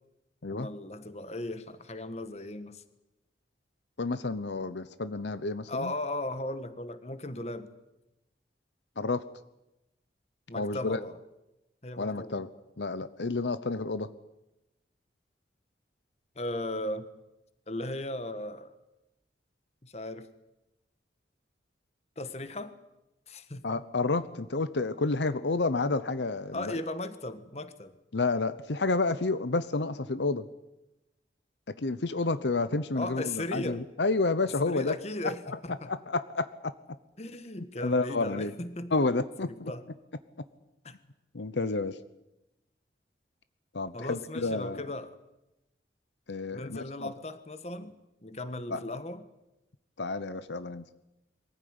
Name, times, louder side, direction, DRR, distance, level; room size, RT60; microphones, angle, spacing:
voice 1, 0.5-2.8 5.7-7.7 10.5-11.2 11.8-12.4 16.3-17.1 17.7-18.7 19.8-20.3 22.2-22.8 23.3-23.7 26.5-27.9 32.9-33.8 34.7-35.9 37.2-38.9 39.4-39.9 40.8-41.0 43.9-45.2 46.5-49.2, left 1 dB, 35° left, 11 dB, 1.5 m, -37 dB
voice 2, 4.0-5.9 9.0-9.2 10.5-11.0 12.0-12.5 12.8-14.1 23.6-26.8 28.1-30.4 31.8-34.9 35.9-36.7 37.8-38.5 38.9-39.7 41.3-42.0 43.7-44.8 46.3-47.1 48.7-48.8 50.0-50.8, left 3 dB, 85° left, 13 dB, 0.9 m, -30 dB
23.0 x 15.5 x 9.7 m, 0.93 s
head